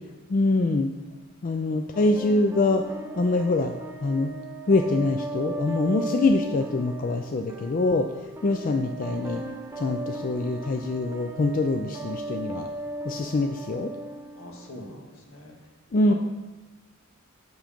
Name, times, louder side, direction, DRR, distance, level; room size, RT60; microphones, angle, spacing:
voice 1, 0.3-0.9 1.4-2.8 3.2-3.7 4.0-4.3 4.7-8.1 8.4-9.4 9.8-12.7 13.0-13.9 15.9-16.1, left 2 dB, 40° left, 5 dB, 0.4 m, -24 dB
sound 1, 1.9-15.0, right 1 dB, 15° right, 0.5 m, -37 dB
voice 2, 14.3-15.6 16.1-16.2, left 1 dB, 70° left, -1 dB, 1.8 m, -43 dB
7.4 x 6.3 x 5.2 m, 1.1 s
head